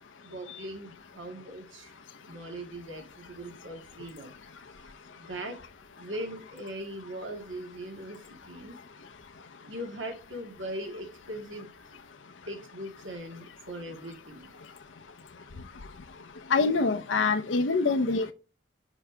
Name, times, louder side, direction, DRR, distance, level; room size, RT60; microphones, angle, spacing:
voice 1, 0.2-1.9 2.3-4.3 5.2-5.6 6.0-8.8 9.6-11.7 12.5-14.5, right 1 dB, 90° right, 2.1 m, -40 dB
voice 2, 16.5-18.3, left 4 dB, 90° left, 0.6 m, -25 dB
7.0 x 5.6 x 2.7 m
head